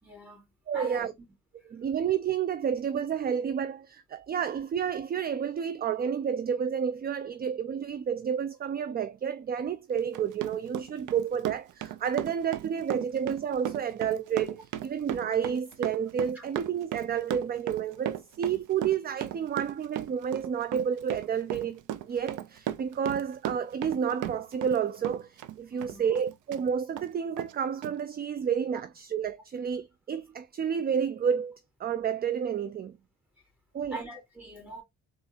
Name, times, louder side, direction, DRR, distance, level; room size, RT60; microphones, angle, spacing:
voice 1, 0.0-1.1 16.3-16.5 25.7-26.0 33.9-34.8, right 2 dB, 5° right, 2.6 m, -43 dB
voice 2, 0.7-1.1 1.7-21.8 22.1-33.0 33.7-34.0, right 7 dB, 30° right, 0.4 m, -30 dB
Run, 10.0-24.8 25.0-26.6 27.0-27.1 27.4-27.5 27.8-27.9, right 12 dB, 80° right, 0.6 m, -36 dB
4.2 x 2.5 x 3.9 m
cardioid pair, 90°, 30 cm